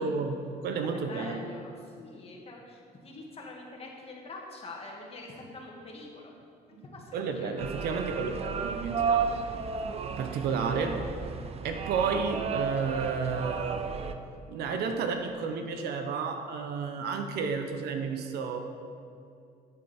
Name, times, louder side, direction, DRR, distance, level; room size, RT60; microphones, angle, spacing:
voice 1, 0.0-1.4 6.8-6.9 7.1-9.4 10.2-11.1 11.6-13.8 14.5-18.6, right 5 dB, 75° right, 6 dB, 1.0 m, -31 dB
voice 2, 0.8-6.3 6.7-7.5, left 2 dB, 35° left, -1 dB, 2.0 m, -45 dB
sound 1, 7.6-14.1, right 5 dB, 35° right, 0.6 m, -33 dB
11.0 x 7.9 x 4.4 m, 2.4 s
cardioid pair, 110°, 17 cm